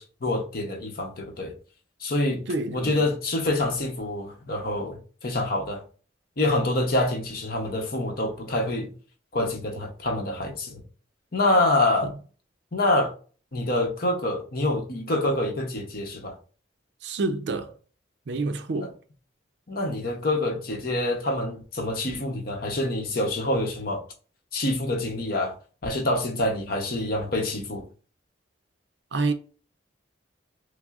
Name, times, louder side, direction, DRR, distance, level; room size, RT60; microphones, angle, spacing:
voice 1, 0.0-1.5 2.0-5.8 6.4-8.9 9.3-10.8 11.3-12.1 12.7-13.1 13.5-16.3 18.7-18.9 19.7-24.0 24.5-25.6 25.8-27.9, left 1 dB, 50° left, 0.8 m, -26 dB
voice 2, 2.5-3.0 12.0-12.1 17.0-17.7 18.3-18.9 29.1-29.3, right 3 dB, 60° right, 0.4 m, -28 dB
5.9 x 2.0 x 2.4 m
head